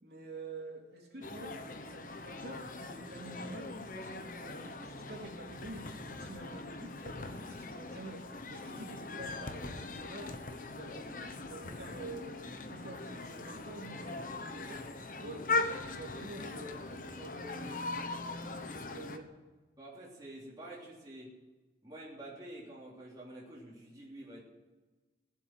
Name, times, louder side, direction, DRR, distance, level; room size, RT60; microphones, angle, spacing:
voice 1, 0.0-1.6 1.9-10.4 10.6-12.3 12.6-14.8 15.2-18.1 18.5-19.3, right 1 dB, 60° right, -2 dB, 3.5 m, -47 dB
sound 1, 1.2-19.2, left 3 dB, 50° left, 1.1 m, -40 dB
voice 2, 19.8-21.3 21.8-24.4, right 1 dB, 20° right, -5 dB, 3.3 m, -48 dB
16.5 x 7.5 x 9.3 m, 1.2 s
head